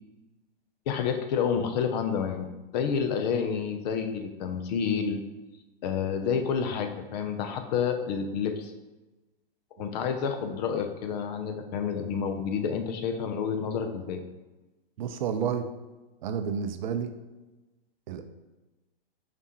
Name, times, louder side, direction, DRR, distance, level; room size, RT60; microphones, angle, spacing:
voice 1, 0.9-2.5 2.7-5.2 5.8-8.7 9.8-14.2, left 6 dB, 45° left, 7 dB, 0.6 m, -29 dB
voice 2, 15.0-15.7 16.2-17.1 18.1-18.2, right 7 dB, 50° right, 8 dB, 0.5 m, -30 dB
5.0 x 3.4 x 2.8 m, 1.1 s
hypercardioid pair, 120°, 30 cm